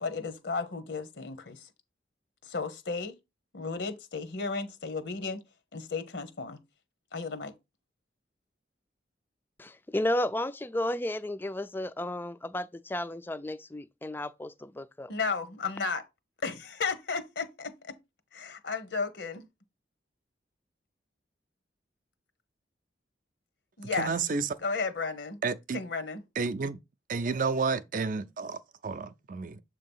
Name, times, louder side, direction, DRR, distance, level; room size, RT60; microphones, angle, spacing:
voice 1, 0.0-1.7 2.4-3.1 3.5-5.4 5.7-6.6 7.1-7.5 15.1-16.0 16.4-17.7 18.3-19.5 23.8-24.1 24.6-25.4 25.7-26.2, left 4 dB, 75° left, 0.9 m, -33 dB
voice 2, 9.6-15.1, left 1 dB, 10° left, 0.3 m, -33 dB
voice 3, 23.9-24.6 25.4-25.8 26.4-26.8 27.1-29.6, right 4 dB, 45° right, 0.5 m, -31 dB
7.3 x 2.9 x 5.4 m
head